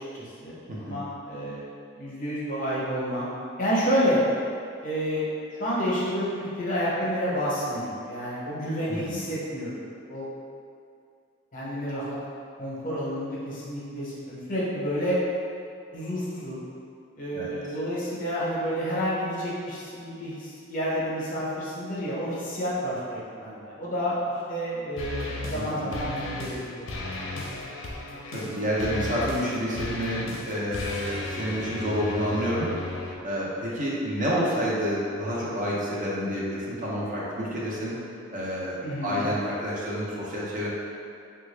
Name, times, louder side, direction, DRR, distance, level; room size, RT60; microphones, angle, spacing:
voice 1, 0.1-1.7 1.9-3.3 3.6-4.2 4.8-5.2 5.6-9.8 10.1-10.3 11.5-12.2 12.6-15.2 15.9-16.6 17.2-24.2 24.5-26.9 38.8-39.2, equal, 40° left, -7 dB, 0.7 m, -29 dB
voice 2, 0.7-1.0 8.9-9.2 17.3-17.5 25.5-25.8 28.3-32.7 33.2-37.9 38.3-40.7, equal, 40° right, -6 dB, 0.6 m, -29 dB
sound 1, 25.0-25.6 25.9-26.6 26.9-33.2, left 2 dB, 75° left, 0.5 m, -34 dB
3.5 x 2.3 x 3.2 m, 2.5 s
head